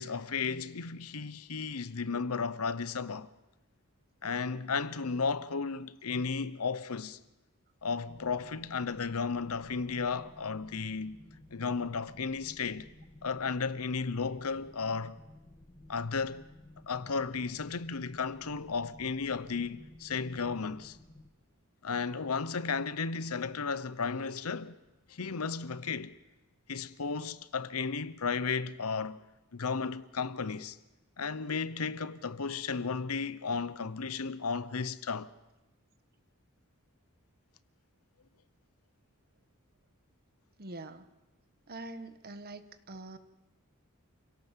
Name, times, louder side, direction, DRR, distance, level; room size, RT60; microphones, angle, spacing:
voice 1, 0.0-3.3 4.2-7.2 7.8-11.2 11.5-12.9 13.2-15.2 15.9-16.4 16.9-21.0 21.8-24.8 25.1-26.2 26.7-29.2 29.5-30.8 31.2-35.3, left 5 dB, 90° left, 0.9 m, -34 dB
sound 1, 8.1-21.3, left 1 dB, 25° left, 1.5 m, -54 dB
voice 2, 40.6-41.1 41.7-43.2, right 2 dB, 45° right, 1.4 m, -44 dB
28.5 x 17.5 x 7.5 m
head